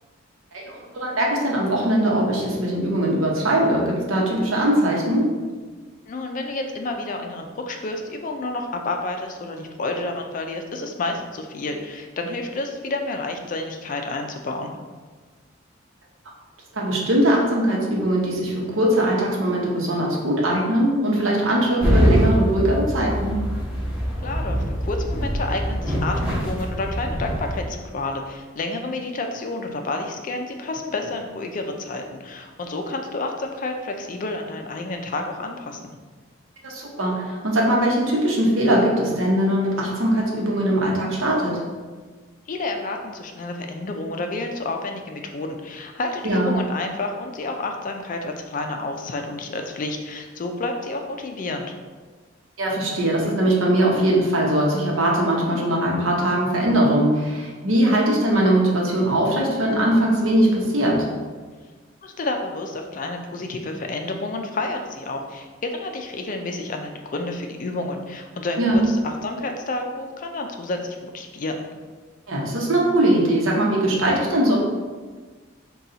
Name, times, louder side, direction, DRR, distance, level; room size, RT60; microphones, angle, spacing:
voice 1, 0.5-5.3 16.7-23.4 36.6-41.6 46.2-46.6 52.6-61.1 68.6-68.8 72.3-74.5, right 1 dB, 80° right, -2 dB, 0.9 m, -21 dB
voice 2, 6.1-14.7 24.2-35.9 42.5-51.7 62.0-71.6, left 2 dB, 40° left, 4 dB, 0.4 m, -30 dB
sound 1, 21.8-27.6, equal, 5° right, 0.8 m, -23 dB
4.1 x 2.3 x 3.8 m, 1.4 s
head